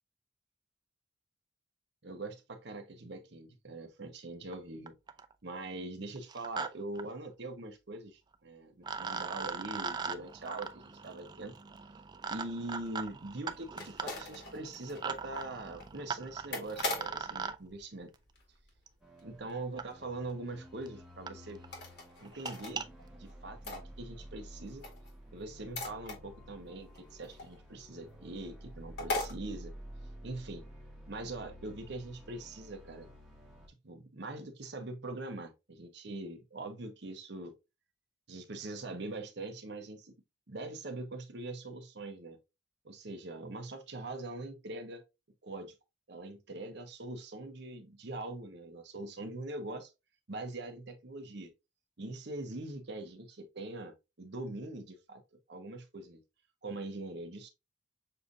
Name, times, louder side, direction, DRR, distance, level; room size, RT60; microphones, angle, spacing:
voice 1, 2.0-4.9 5.4-11.5 12.3-18.1 19.2-21.6 22.2-24.8 25.3-29.7 30.2-30.6 31.1-33.1 33.8-37.5 38.3-40.1 40.5-42.4 42.8-45.0 45.4-45.7 46.1-49.9 50.3-51.5 52.0-56.2 56.6-57.5, right 2 dB, 60° right, 0.9 m, -42 dB
sound 1, 4.5-4.6 4.9-5.3 6.2-6.7 7.0-7.1 8.3-8.4 8.8-17.6 18.9-19.0 19.8-19.9 20.5-20.6 20.9-21.0 21.3-21.4 21.6-21.8 22.3-22.9, right 5 dB, 20° right, 0.3 m, -40 dB
sound 2, 12.3-18.9 19.2-19.6 19.9-20.0 20.3-20.4 20.8-20.9 21.6-22.7 23.0-24.4 24.7-27.9 28.2-28.3 28.6-28.7 29.0-29.3, left 2 dB, 55° left, 1.5 m, -41 dB
sound 3, 19.0-33.7, equal, 5° right, 1.1 m, -51 dB
6.7 x 2.6 x 2.6 m
head